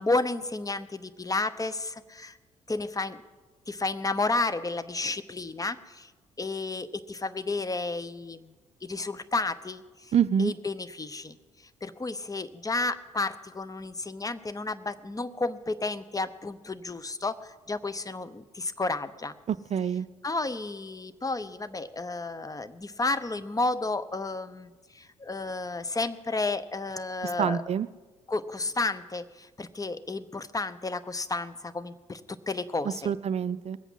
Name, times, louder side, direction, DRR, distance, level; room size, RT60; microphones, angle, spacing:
voice 1, 0.0-2.4 2.7-3.2 3.7-6.1 6.4-8.5 8.8-10.1 10.4-11.4 11.8-19.3 20.2-27.6 28.3-32.2 32.5-33.1, left 3 dB, 20° left, 13 dB, 0.9 m, -32 dB
voice 2, 10.1-10.5 19.5-20.1 27.4-27.9 33.1-33.8, right 8 dB, 40° right, 15 dB, 0.5 m, -26 dB
20.5 x 8.1 x 7.4 m, 1.2 s
hypercardioid pair, 45°, 16 cm